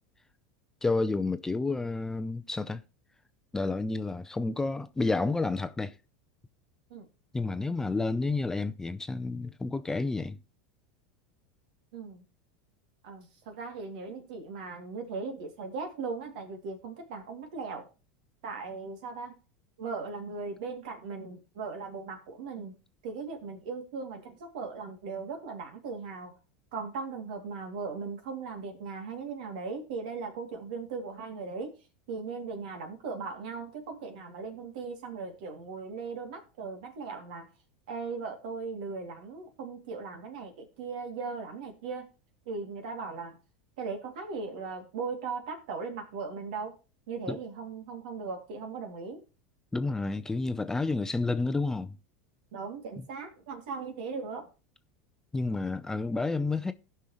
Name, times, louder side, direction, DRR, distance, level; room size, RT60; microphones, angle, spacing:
voice 1, 0.8-2.8 3.5-5.9 7.3-10.4 47.3-47.4 49.7-52.0 55.3-56.7, left 3 dB, 10° left, 0.6 m, -30 dB
voice 2, 11.9-12.2 13.0-17.9 18.4-19.4 19.8-22.7 23.0-26.4 26.7-31.7 32.1-37.5 37.9-42.1 42.5-43.3 43.8-46.8 47.1-49.2 52.5-54.5, right 4 dB, 75° right, 2.5 m, -38 dB
16.5 x 5.6 x 3.1 m
supercardioid pair, 105°, 5 cm